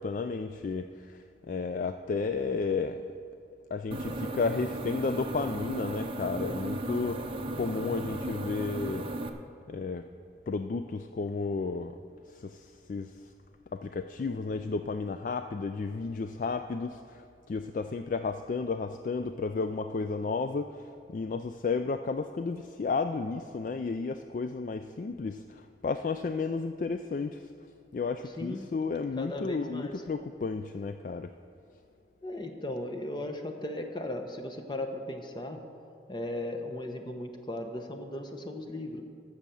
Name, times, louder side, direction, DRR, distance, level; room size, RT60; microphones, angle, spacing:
voice 1, 0.0-3.0 3.7-9.1 9.7-10.1 10.5-12.0 12.3-13.3 13.7-27.4 27.9-31.3, left 4 dB, 45° left, 9 dB, 0.3 m, -33 dB
sound 1, 3.9-9.3, right 2 dB, 30° right, 0.6 m, -35 dB
voice 2, 29.2-29.9 32.2-35.6 36.1-39.0, left 1 dB, 25° left, 5 dB, 0.9 m, -37 dB
13.5 x 6.6 x 6.9 m, 2.4 s
head